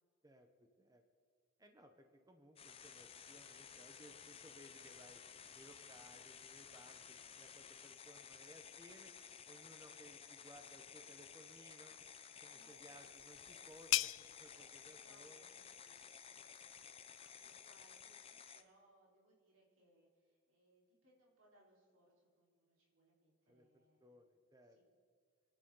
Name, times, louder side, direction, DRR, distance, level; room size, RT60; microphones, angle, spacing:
voice 1, 0.2-1.0 1.6-5.2 5.5-9.1 9.5-12.1 12.4-15.5 23.5-24.8, right 1 dB, 15° right, 5 dB, 1.0 m, -62 dB
sound 1, 2.6-18.6, left 7 dB, 30° left, 0.6 m, -55 dB
voice 2, 12.5-13.1 14.5-14.7 15.0-24.2 24.7-24.9, right 1 dB, 90° right, -4 dB, 4.1 m, -72 dB
sound 2, 12.6-18.0, left 15 dB, 65° left, 0.3 m, -44 dB
28.5 x 10.5 x 3.9 m, 2.1 s
head